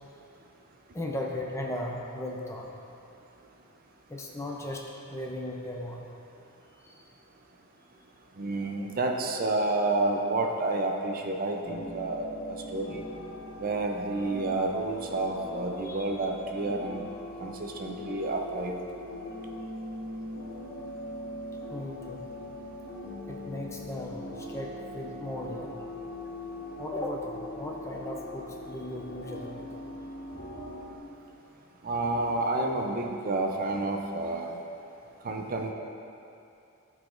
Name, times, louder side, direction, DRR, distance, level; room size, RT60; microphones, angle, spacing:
voice 1, 0.9-2.7 4.1-6.1 6.8-6.9 15.8-16.1 21.7-22.2 23.3-25.8 26.8-29.8 30.3-30.6, left 1 dB, 15° left, -1 dB, 0.5 m, -37 dB
voice 2, 8.4-12.3 12.7-13.0 13.6-17.0 17.4-18.7 31.8-34.6 35.2-35.7, right 2 dB, 40° right, 2 dB, 0.5 m, -29 dB
sound 1, 11.6-31.0, left 1 dB, 65° left, 1.3 m, -41 dB
12.5 x 4.9 x 2.5 m, 2.7 s
head